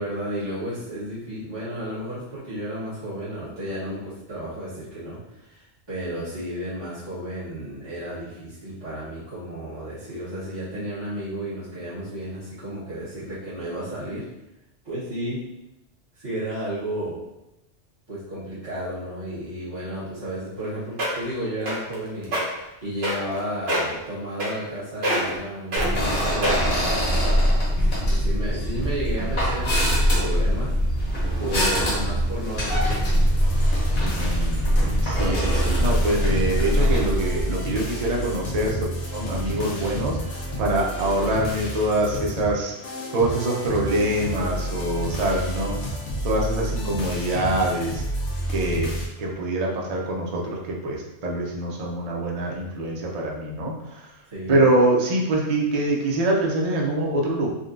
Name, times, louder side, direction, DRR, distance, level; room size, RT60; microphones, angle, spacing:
voice 1, 0.0-14.2 14.8-15.4 16.1-17.2 18.1-30.7 31.0-33.1 54.3-54.6, right 1 dB, 25° right, -14 dB, 1.1 m, -33 dB
sound 1, 20.6-20.7 21.0-21.3 21.7-21.9 22.2-22.4 23.0-23.4 23.7-23.9 24.4-24.8 25.0-25.4 25.7-25.9 26.4-26.8 27.4-27.5, right 1 dB, 65° right, 1.0 m, -24 dB
sound 2, 25.7-37.5, equal, 50° left, 1.1 m, -22 dB
sound 3, 32.7-49.1, equal, 85° left, 1.0 m, -30 dB
voice 2, 34.2-38.8 39.1-42.7 43.1-45.7 46.2-48.0 48.5-48.9 49.2-53.7 54.5-57.5, right 1 dB, 50° right, -2 dB, 0.5 m, -24 dB
3.8 x 2.2 x 2.5 m, 0.92 s
omnidirectional pair, 1.2 m